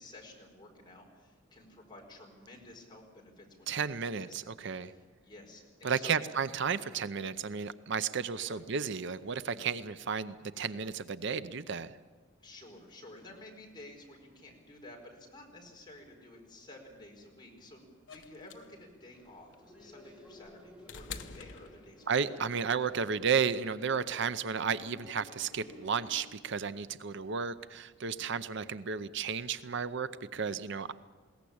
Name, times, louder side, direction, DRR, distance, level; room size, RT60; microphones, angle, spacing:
voice 1, 0.0-3.9 4.2-6.2 8.4-8.7 12.4-22.1, left 1 dB, 20° left, 0 dB, 4.6 m, -52 dB
voice 2, 3.7-4.9 5.8-11.9 22.1-30.9, right 6 dB, 60° right, 13 dB, 0.7 m, -33 dB
sound 1, 18.1-22.4 23.6-23.7, left 6 dB, 65° left, 1.0 m, -48 dB
sound 2, 19.1-26.2, left 1 dB, 5° right, 3.5 m, -55 dB
21.5 x 17.5 x 8.6 m, 1.3 s
head